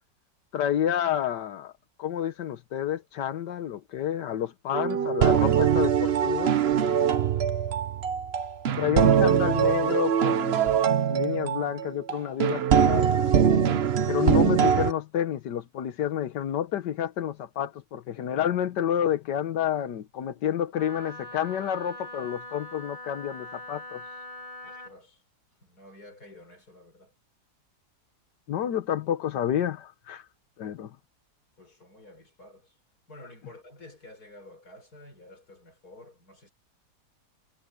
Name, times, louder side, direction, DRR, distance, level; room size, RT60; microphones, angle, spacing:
voice 1, 0.5-1.7 2.0-6.5 8.8-10.7 11.1-13.3 14.1-24.0 28.5-30.3 30.6-30.9, left 10 dB, 90° left, 1.6 m, -29 dB
sound 1, 4.7-14.9, right 8 dB, 50° right, 0.8 m, -23 dB
voice 2, 6.8-7.5 24.6-25.2 25.6-27.1 31.6-32.8 33.1-36.5, left 1 dB, 65° left, 6.3 m, -51 dB
Wind instrument woodwind instrument, 20.8-24.9, left 1 dB, 30° left, 1.4 m, -42 dB
omnidirectional pair, 1.8 m